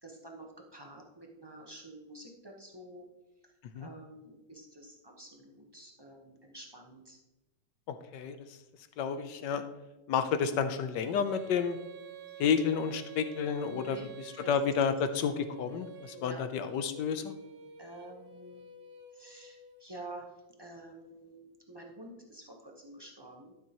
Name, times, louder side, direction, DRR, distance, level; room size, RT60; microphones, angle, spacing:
voice 1, 0.0-3.1 3.4-3.5 3.8-7.2 12.3-12.4 13.7-14.1 14.4-14.5 16.1-16.4 17.8-18.6 19.1-20.3 20.6-23.5, right 1 dB, 40° right, 0 dB, 0.3 m, -49 dB
voice 2, 7.9-8.4 9.0-9.6 10.1-11.8 12.4-14.0 14.5-17.3, left 6 dB, 70° left, 10 dB, 1.1 m, -30 dB
Female singing, 11.0-19.8, right 5 dB, 60° right, 1.1 m, -49 dB
12.0 x 7.4 x 2.9 m, 1.0 s
omnidirectional pair, 2.4 m